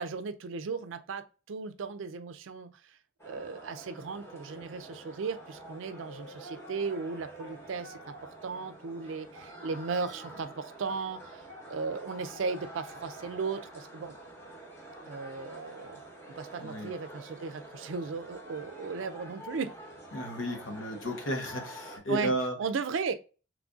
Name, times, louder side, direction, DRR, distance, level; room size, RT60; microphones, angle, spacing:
voice 1, 0.0-3.0 3.3-14.2 15.1-16.0 16.3-19.7 22.1-22.3 22.6-23.1, right 5 dB, 80° right, 0.4 m, -36 dB
sound 1, 3.2-22.0, right 1 dB, 15° left, 1.0 m, -47 dB
voice 2, 16.6-16.9 20.1-22.5, equal, 85° left, 1.1 m, -33 dB
3.7 x 3.2 x 2.4 m
head